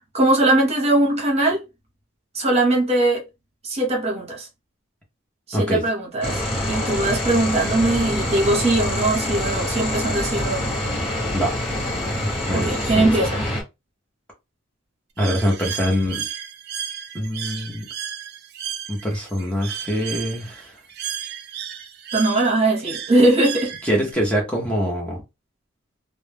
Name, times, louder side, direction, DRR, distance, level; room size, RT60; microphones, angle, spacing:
voice 1, 0.1-1.6 2.3-3.2 3.6-4.5 5.5-10.6 12.5-13.4 22.1-23.7, right 2 dB, 30° right, 0.8 m, -20 dB
voice 2, 5.5-5.8 11.3-11.5 12.5-13.1 15.2-16.3 17.1-17.8 18.9-20.8 23.8-25.2, equal, 5° left, 0.6 m, -24 dB
sound 1, 6.2-13.6, left 1 dB, 30° left, 1.0 m, -25 dB
Bird, 15.2-24.1, right 9 dB, 55° right, 0.4 m, -34 dB
2.1 x 2.0 x 3.3 m
head